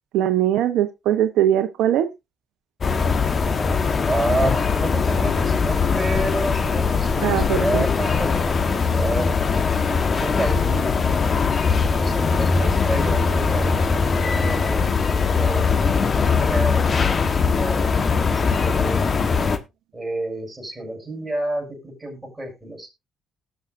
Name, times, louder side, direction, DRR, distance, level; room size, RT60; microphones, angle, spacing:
voice 1, 0.1-2.1 7.2-7.8, right 11 dB, 90° right, 1.0 m, -20 dB
sound 1, 2.8-19.6, left 5 dB, 40° left, 1.3 m, -21 dB
voice 2, 4.1-9.5 10.2-10.9 11.7-13.7 14.4-17.9 18.2-19.1 19.9-22.9, right 1 dB, 15° right, 7.1 m, -30 dB
19.5 x 6.5 x 2.6 m
cardioid pair, 90°, 0 cm